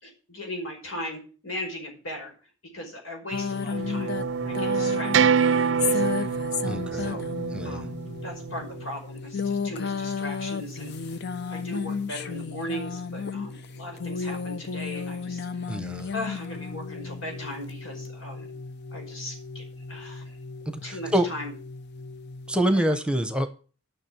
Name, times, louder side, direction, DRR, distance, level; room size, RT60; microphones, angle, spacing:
voice 1, 0.0-2.3 2.7-4.1 4.4-5.3 5.8-6.2 6.9-7.3 7.6-7.9 8.2-11.1 11.5-15.8 16.1-18.5 18.9-20.4 20.8-21.5 22.8-23.0, left 1 dB, 85° left, 2 dB, 5.3 m, -38 dB
sound 1, 3.3-22.6, left 5 dB, 55° left, 0.7 m, -34 dB
sound 2, 3.7-8.8, right 6 dB, 65° right, 0.5 m, -26 dB
voice 2, 6.6-7.1 7.5-7.8 15.7-16.1 20.7-21.3 22.5-23.5, right 1 dB, 5° right, 10 dB, 0.9 m, -26 dB
10.0 x 6.3 x 8.8 m, 0.37 s
head